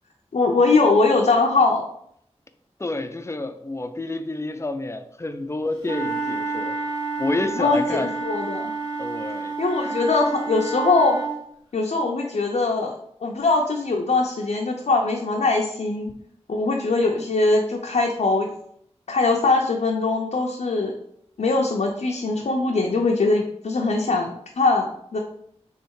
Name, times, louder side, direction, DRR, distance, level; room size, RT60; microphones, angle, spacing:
voice 1, 0.3-1.8 7.6-8.7 9.6-11.2 11.7-12.9 13.2-16.1 16.5-18.5 19.1-20.9 21.4-25.2, left 3 dB, 85° left, -1 dB, 0.6 m, -21 dB
voice 2, 2.8-6.8 7.2-8.1 9.0-9.6 9.8-10.0, left 2 dB, 25° left, 8 dB, 0.4 m, -29 dB
sound 1, 5.8-11.3, right 4 dB, 35° right, 1.8 m, -29 dB
3.5 x 3.2 x 4.6 m, 0.70 s
wide cardioid pair, 55°, 12 cm